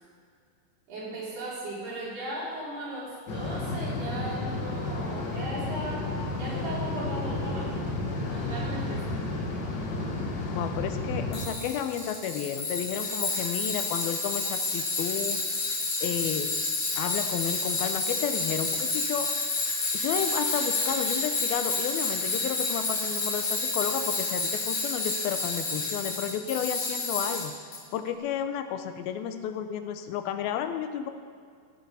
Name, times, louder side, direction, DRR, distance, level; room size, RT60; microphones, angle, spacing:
voice 1, 0.9-6.1 6.3-8.0 8.3-9.3, right 1 dB, 85° right, -6 dB, 6.2 m, -37 dB
sound 1, 3.3-11.5, left 2 dB, 65° left, 1.1 m, -32 dB
voice 2, 10.5-15.5 16.0-16.6 17.0-19.3 19.9-27.5 27.9-31.1, left 9 dB, 85° left, 8 dB, 2.4 m, -32 dB
Tools, 11.3-27.8, left 3 dB, 45° left, 3.4 m, -30 dB
16.5 x 8.5 x 6.9 m, 2.2 s
omnidirectional pair, 4.5 m